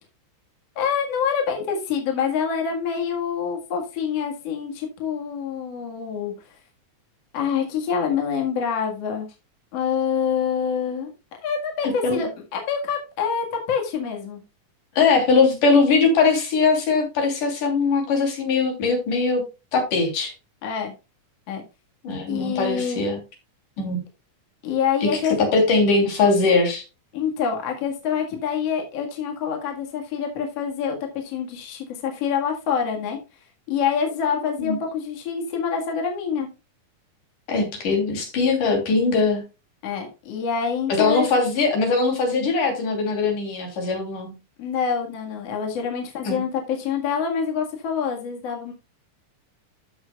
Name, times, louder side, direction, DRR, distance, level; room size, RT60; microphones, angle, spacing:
voice 1, 0.8-6.3 7.3-9.3 9.7-11.1 11.4-14.4 20.6-20.9 21.5-21.6 22.3-23.1 24.6-25.4 27.1-33.2 33.7-36.5 39.8-41.3 44.6-48.7, left 7 dB, 55° left, 1 dB, 2.7 m, -26 dB
voice 2, 11.8-12.3 15.0-19.4 19.7-20.3 22.0-23.2 23.8-24.0 25.0-26.8 34.6-34.8 37.5-39.4 40.9-44.3 46.2-46.4, left 4 dB, 80° left, 2 dB, 4.5 m, -21 dB
14.0 x 6.3 x 2.3 m, 0.27 s
omnidirectional pair, 3.6 m